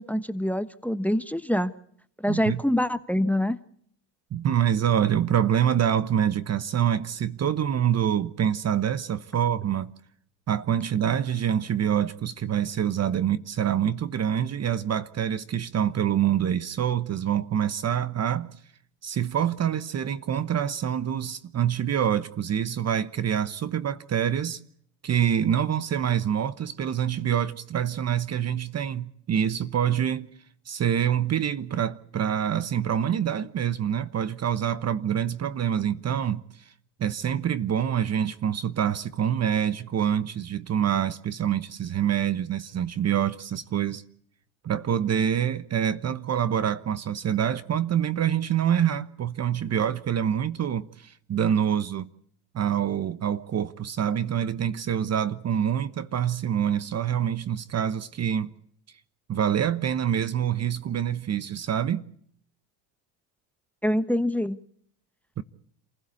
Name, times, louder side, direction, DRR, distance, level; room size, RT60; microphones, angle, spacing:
voice 1, 0.0-1.7 2.2-3.6 63.8-64.6, left 1 dB, 5° left, 1.2 m, -25 dB
voice 2, 2.3-2.6 4.3-9.9 10.5-18.5 19.0-24.6 25.0-30.3 30.7-36.7 37.0-44.0 44.6-52.1 52.5-58.5 59.3-62.0 65.4-65.5, right 9 dB, 30° right, 1.1 m, -26 dB
28.0 x 16.0 x 8.4 m
supercardioid pair, 100°, 49 cm